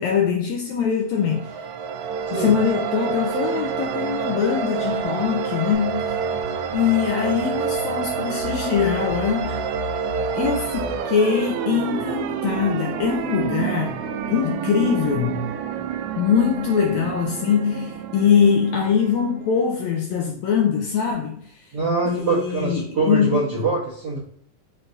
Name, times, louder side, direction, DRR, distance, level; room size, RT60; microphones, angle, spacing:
voice 1, 0.0-1.6 2.3-6.2 6.7-9.7 10.3-14.0 14.3-15.4 16.2-21.7 22.1-23.4, left 7 dB, 80° left, 1.6 m, -22 dB
sound 1, 1.1-19.8, right 7 dB, 80° right, 2.0 m, -28 dB
sound 2, 5.7-11.0, left 4 dB, 45° left, 0.5 m, -37 dB
voice 2, 21.7-24.2, right 3 dB, 55° right, 1.2 m, -24 dB
6.2 x 3.2 x 2.6 m
omnidirectional pair, 3.6 m